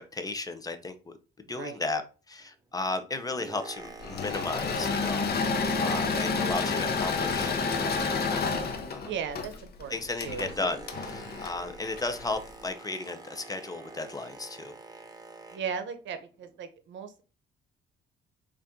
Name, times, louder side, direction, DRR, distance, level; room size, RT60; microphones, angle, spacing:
voice 1, 0.1-1.1 1.5-2.0 2.3-7.5 7.8-8.6 8.9-9.1 9.9-14.7, left 3 dB, 20° left, 8 dB, 0.6 m, -35 dB
voice 2, 1.5-1.8 9.0-10.5 15.5-17.2, right 7 dB, 70° right, 9 dB, 0.7 m, -37 dB
Boat Water vehicle, 3.0-9.1 9.4-15.8 16.5-16.6, right 3 dB, 20° right, 0.8 m, -46 dB
Engine / Mechanisms, 4.0-12.4, left 4 dB, 50° left, 0.8 m, -30 dB
4.1 x 2.5 x 3.6 m, 0.35 s
cardioid pair, 90°, 20 cm